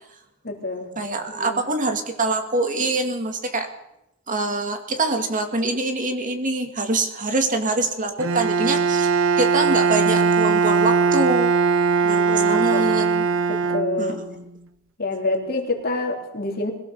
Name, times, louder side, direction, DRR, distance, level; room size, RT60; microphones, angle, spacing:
voice 1, 0.4-0.9 1.3-1.6 12.2-12.9 13.5-14.2 15.0-16.7, left 2 dB, 45° left, 2 dB, 3.5 m, -27 dB
voice 2, 1.0-3.7 4.3-9.1 9.4-11.5 12.0-13.3 14.0-14.4, right 2 dB, 40° right, 5 dB, 2.3 m, -24 dB
Bowed string instrument, 8.2-14.4, right 5 dB, 65° right, 0.9 m, -20 dB
21.5 x 17.0 x 7.1 m, 0.85 s
head